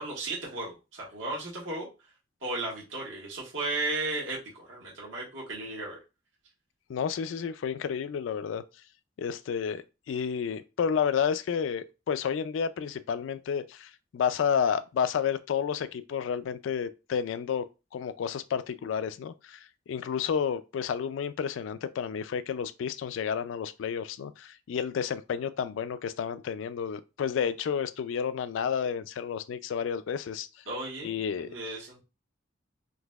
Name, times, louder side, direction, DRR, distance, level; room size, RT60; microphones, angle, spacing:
voice 1, 0.0-1.9 2.4-6.0 30.7-32.0, right 2 dB, 90° right, 1.4 m, -35 dB
voice 2, 6.9-8.6 9.2-17.6 17.9-19.6 19.9-30.5 31.0-31.5, left 7 dB, 85° left, 0.3 m, -31 dB
3.9 x 2.7 x 2.3 m
head